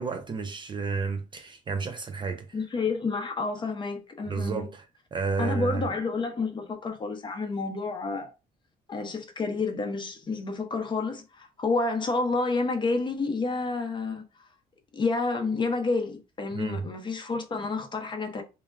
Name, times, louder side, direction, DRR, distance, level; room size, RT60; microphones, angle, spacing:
voice 1, 0.0-2.5 4.3-4.8 5.1-5.9 16.5-16.9, right 4 dB, 30° right, 0.4 m, -31 dB
voice 2, 2.5-4.7 5.4-8.3 8.9-14.2 14.9-18.4, left 3 dB, 30° left, 0.6 m, -29 dB
2.3 x 2.0 x 3.4 m
cardioid pair, 110°, 17 cm